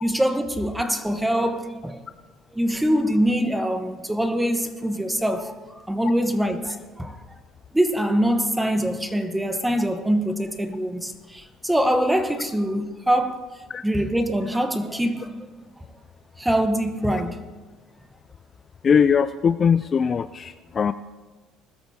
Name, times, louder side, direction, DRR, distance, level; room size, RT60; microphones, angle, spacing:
voice 1, 0.0-2.0 2.5-5.5 5.9-7.2 7.7-13.5 13.8-15.4 15.8-15.9 16.4-17.5, equal, 5° right, 1.1 m, -24 dB
voice 2, 18.8-20.9, left 6 dB, 35° left, 0.3 m, -20 dB
20.5 x 13.0 x 2.8 m
cardioid pair, 120°, 0 cm